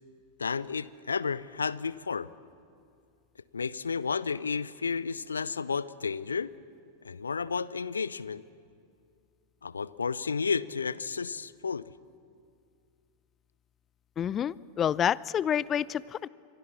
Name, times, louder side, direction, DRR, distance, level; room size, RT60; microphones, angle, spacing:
voice 1, 0.4-2.3 3.5-6.5 7.0-8.4 9.6-11.9, left 5 dB, 75° left, 19 dB, 0.7 m, -32 dB
voice 2, 14.2-16.3, left 9 dB, 25° left, 22 dB, 0.5 m, -28 dB
27.0 x 24.0 x 7.2 m, 2.4 s
figure-of-eight pair, 90°, 0 cm